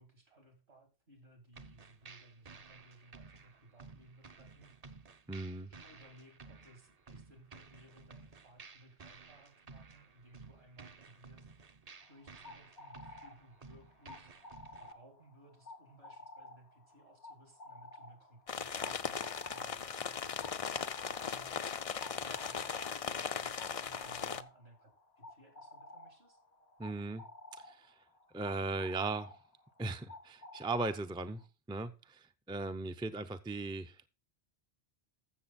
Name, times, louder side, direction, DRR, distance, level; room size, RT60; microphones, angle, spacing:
voice 1, 0.0-4.8 5.5-11.7 12.1-14.4 14.8-26.4, right 1 dB, 70° right, 4 dB, 3.3 m, -60 dB
sound 1, 1.5-14.9, right 4 dB, 40° right, 0.8 m, -55 dB
voice 2, 5.3-5.7 26.8-27.2 27.5-28.0 28.3-29.4 29.8-31.4 31.7-34.0, right 3 dB, 5° right, 8 dB, 0.5 m, -38 dB
sound 2, 12.0-31.4, left 2 dB, 75° left, 1.2 m, -54 dB
sound 3, 18.5-24.4, left 6 dB, 45° left, 0.5 m, -38 dB
14.5 x 6.8 x 4.2 m, 0.31 s
omnidirectional pair, 1.1 m